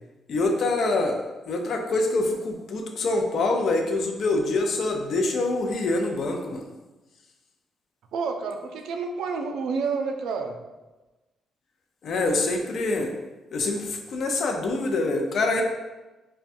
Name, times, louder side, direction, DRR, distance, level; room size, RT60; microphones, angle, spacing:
voice 1, 0.3-1.2 1.5-6.6 12.0-13.1 13.5-15.6, left 2 dB, 50° left, 3 dB, 0.5 m, -25 dB
voice 2, 8.1-10.6, right 4 dB, 75° right, 4 dB, 0.4 m, -29 dB
5.3 x 2.2 x 2.5 m, 1.1 s
cardioid pair, 155°, 0 cm